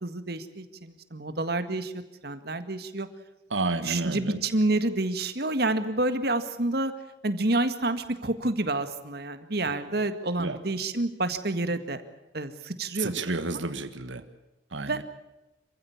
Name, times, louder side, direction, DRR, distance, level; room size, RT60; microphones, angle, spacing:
voice 1, 0.0-1.9 2.2-3.1 3.8-6.9 7.2-12.0 12.3-13.1 14.8-15.0, right 2 dB, 55° right, 10 dB, 1.9 m, -28 dB
voice 2, 3.5-4.4 10.4-10.6 13.0-14.2 14.7-15.0, right 3 dB, 85° right, 10 dB, 1.6 m, -30 dB
27.0 x 15.5 x 8.7 m, 0.98 s
head